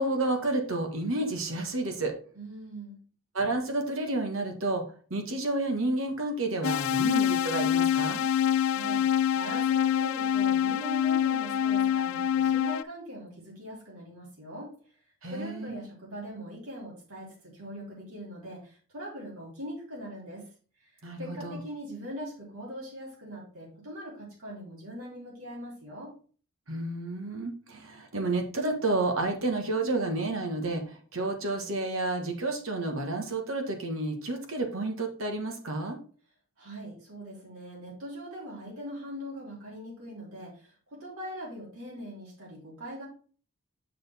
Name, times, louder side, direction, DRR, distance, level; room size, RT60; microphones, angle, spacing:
voice 1, 0.0-2.2 3.3-4.8 5.1-8.2 15.2-15.8 21.0-21.6 26.7-36.0, right 2 dB, 65° right, 4 dB, 1.5 m, -30 dB
voice 2, 2.3-3.0 8.6-14.7 15.3-20.5 20.8-26.1 36.6-43.1, equal, 85° right, -5 dB, 3.3 m, -41 dB
sound 1, 6.6-12.8, left 9 dB, 70° left, 0.3 m, -26 dB
6.6 x 6.3 x 3.5 m, 0.41 s
head